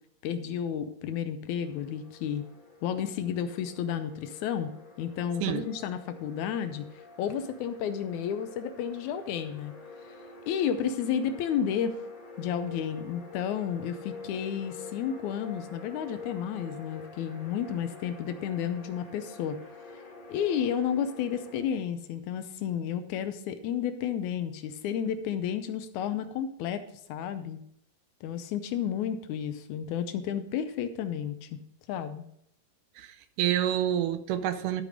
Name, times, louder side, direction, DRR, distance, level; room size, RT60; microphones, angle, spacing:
voice 1, 0.2-2.4 2.8-4.7 5.0-6.9 7.2-9.7 10.0-10.2 10.5-12.0 12.4-19.6 20.3-26.8 27.1-27.6 28.2-31.5 31.9-32.2, left 8 dB, 80° left, 10 dB, 1.7 m, -32 dB
sound 1, 1.6-21.6, left 4 dB, 35° left, 1.6 m, -47 dB
voice 2, 33.0-34.8, right 11 dB, 80° right, 9 dB, 2.1 m, -28 dB
12.0 x 5.0 x 4.9 m, 0.72 s
omnidirectional pair, 3.9 m